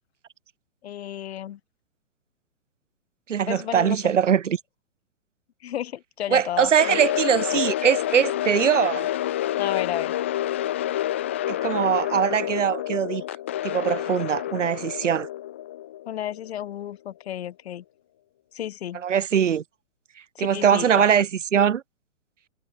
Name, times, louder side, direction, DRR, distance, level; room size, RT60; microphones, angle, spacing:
voice 1, 0.8-1.6 3.5-4.1 5.6-7.0 7.5-7.6 9.6-10.2 16.0-17.8 18.5-19.0 20.3-21.1, left 11 dB, 55° left, 6.7 m, -32 dB
voice 2, 3.3-4.6 6.3-9.1 11.5-13.2 13.6-15.3 19.0-19.6 20.4-21.8, right 8 dB, 70° right, 2.9 m, -22 dB
sound 1, 6.8-16.8, left 12 dB, 10° left, 0.4 m, -28 dB
hypercardioid pair, 140°, 39 cm